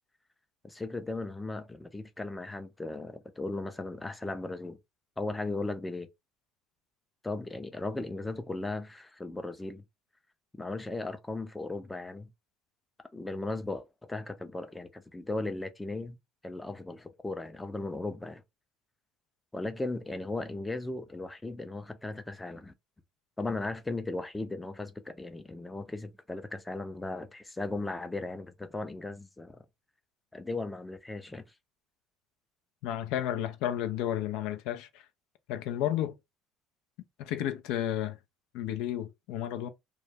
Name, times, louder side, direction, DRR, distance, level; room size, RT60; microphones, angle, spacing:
voice 1, 0.6-4.8 5.2-6.1 7.2-9.8 10.5-12.3 13.1-16.2 16.4-18.4 19.5-22.7 23.4-29.6 30.3-31.5, left 2 dB, 15° left, 0.4 m, -37 dB
voice 2, 32.8-35.1 35.5-36.2 37.2-38.2 38.5-39.7, left 11 dB, 75° left, 0.3 m, -32 dB
2.2 x 2.0 x 3.2 m
supercardioid pair, 80°, 0 cm